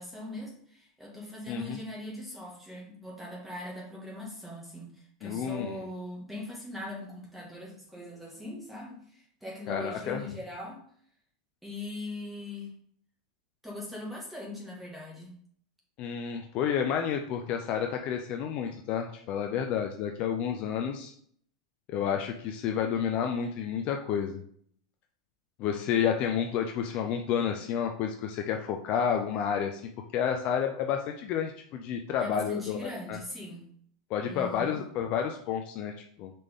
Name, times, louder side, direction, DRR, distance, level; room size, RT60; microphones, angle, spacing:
voice 1, 0.0-10.8 11.6-12.7 13.6-15.4 32.2-33.7 34.3-34.8, left 1 dB, 5° right, -3 dB, 1.9 m, -40 dB
voice 2, 1.5-1.8 5.2-5.8 9.7-10.2 16.0-21.1 21.9-24.4 25.6-29.8 30.1-33.2 34.1-36.3, left 8 dB, 40° left, 4 dB, 0.6 m, -30 dB
6.4 x 4.3 x 3.6 m, 0.62 s
supercardioid pair, 145°, 3 cm